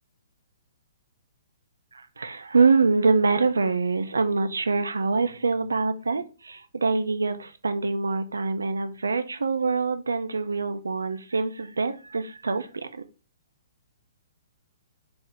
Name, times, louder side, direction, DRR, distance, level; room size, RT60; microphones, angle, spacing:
voice 1, 1.9-13.0, right 4 dB, 75° right, 0.4 m, -25 dB
4.4 x 2.0 x 3.7 m
figure-of-eight pair, 120°, 0 cm